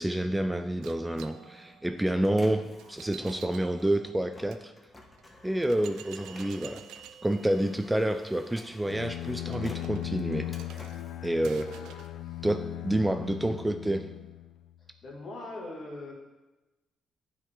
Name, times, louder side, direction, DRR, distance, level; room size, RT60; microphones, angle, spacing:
voice 1, 0.0-4.7 5.4-6.8 7.2-10.5 11.2-11.7 12.4-14.1, right 1 dB, 10° right, 8 dB, 0.4 m, -28 dB
Printer, 0.8-12.2 12.6-14.5, left 1 dB, 20° left, 1.1 m, -52 dB
sound 1, 0.8-4.6 5.2-5.3 5.6-12.2, right 9 dB, 85° right, 0.4 m, -51 dB
Bowed string instrument, 8.9-14.7, left 14 dB, 75° left, 0.3 m, -38 dB
voice 2, 15.0-16.1, left 2 dB, 50° left, -2 dB, 2.1 m, -40 dB
9.5 x 4.8 x 3.7 m, 1.1 s
cardioid pair, 90°, 0 cm